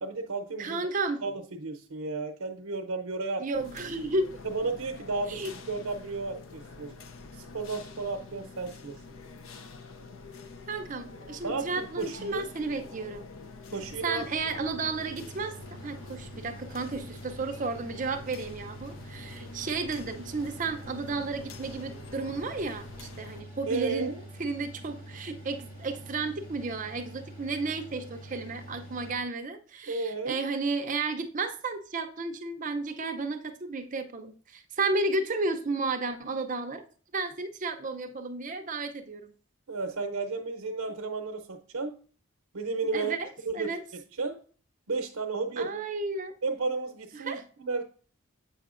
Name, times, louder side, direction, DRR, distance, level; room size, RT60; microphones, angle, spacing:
voice 1, 0.0-0.8 1.2-3.4 4.4-6.9 7.3-8.9 11.4-12.5 13.7-14.3 23.7-24.2 29.9-30.4 39.7-41.9 42.5-43.1 43.4-44.4 44.9-45.8 46.4-47.8, right 3 dB, 85° right, 0.6 m, -33 dB
voice 2, 0.6-1.2 3.4-4.3 5.3-5.5 10.7-13.3 14.0-15.6 15.8-24.1 24.4-36.8 37.1-39.3 42.9-43.8 45.6-46.3 47.2-47.4, right 3 dB, 35° right, 0.5 m, -33 dB
sound 1, 3.6-23.4, left 4 dB, 65° left, 0.5 m, -47 dB
Mechanical fan, 13.7-29.2, right 1 dB, 40° left, 1.8 m, -46 dB
7.7 x 5.6 x 2.5 m
head